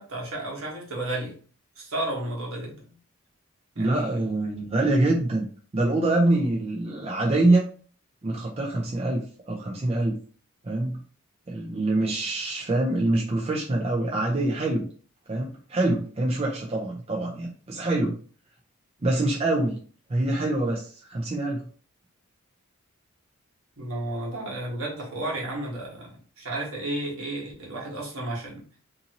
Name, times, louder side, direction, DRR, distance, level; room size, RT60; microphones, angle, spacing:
voice 1, 0.0-1.4 1.8-2.8 3.7-4.2 23.8-28.6, right 1 dB, 70° right, -3 dB, 1.2 m, -32 dB
voice 2, 3.8-5.5 5.7-7.6 8.2-9.2 9.5-10.2 10.6-11.0 11.5-14.9 15.3-18.2 19.0-19.8 20.1-21.6, right 2 dB, 25° right, -2 dB, 0.4 m, -25 dB
2.7 x 2.6 x 2.8 m, 0.41 s
head